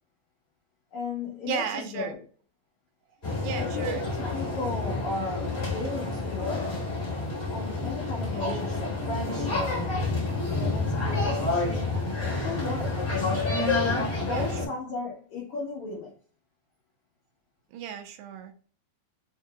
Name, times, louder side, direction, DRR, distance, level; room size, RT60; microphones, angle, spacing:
voice 1, 0.9-2.2 3.6-6.7 7.5-10.1 10.5-11.9 12.3-13.0 13.8-16.1, left 3 dB, 90° left, -3 dB, 1.6 m, -35 dB
voice 2, 1.5-2.2 3.4-4.3 8.2-8.5 14.2-14.6 17.7-18.5, right 7 dB, 85° right, 5 dB, 2.9 m, -35 dB
sound 1, 3.2-14.6, left 3 dB, 75° left, 0.6 m, -29 dB
6.7 x 2.8 x 2.3 m, 0.42 s
omnidirectional pair, 5.0 m